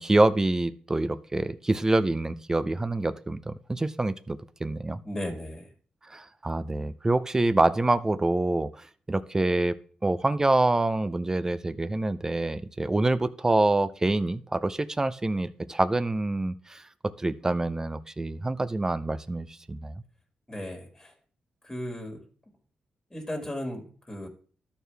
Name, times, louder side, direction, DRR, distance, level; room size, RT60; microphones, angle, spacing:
voice 1, 0.0-5.0 6.1-9.8 10.0-20.0, right 2 dB, 20° right, 14 dB, 0.6 m, -26 dB
voice 2, 5.0-5.7 20.5-21.1 21.6-22.2 23.1-24.3, left 1 dB, 15° left, 2 dB, 2.1 m, -35 dB
13.0 x 4.6 x 3.4 m, 0.42 s
cardioid pair, 80°, 3 cm